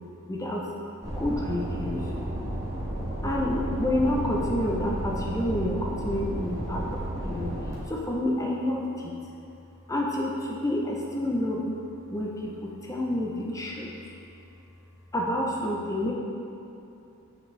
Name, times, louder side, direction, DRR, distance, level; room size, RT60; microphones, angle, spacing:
voice 1, 0.3-0.7 1.1-2.1 3.2-9.1 9.9-11.7 12.1-14.1 15.1-16.1, left 1 dB, 15° left, -2 dB, 0.6 m, -29 dB
sound 1, 1.0-7.7, right 1 dB, 15° right, 1.6 m, -32 dB
7.8 x 6.0 x 3.2 m, 2.7 s
head